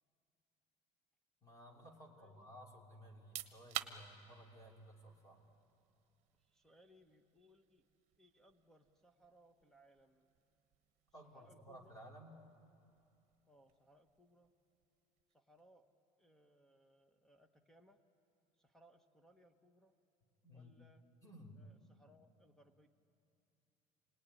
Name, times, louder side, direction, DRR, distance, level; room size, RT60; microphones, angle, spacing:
voice 1, 1.4-5.5 11.1-12.4 20.4-20.7 21.2-21.6, equal, 25° left, 1 dB, 3.0 m, -57 dB
voice 2, 2.1-2.5 6.4-7.9 8.2-10.3 11.3-12.0 13.5-14.5 15.3-15.9 16.2-18.0 18.5-19.9 20.5-21.0 21.6-22.9, equal, 5° left, 7 dB, 1.1 m, -68 dB
sound 1, 3.1-15.7, right 13 dB, 55° right, 1.1 m, -54 dB
28.0 x 19.5 x 9.8 m, 2.7 s
cardioid pair, 165°, 14 cm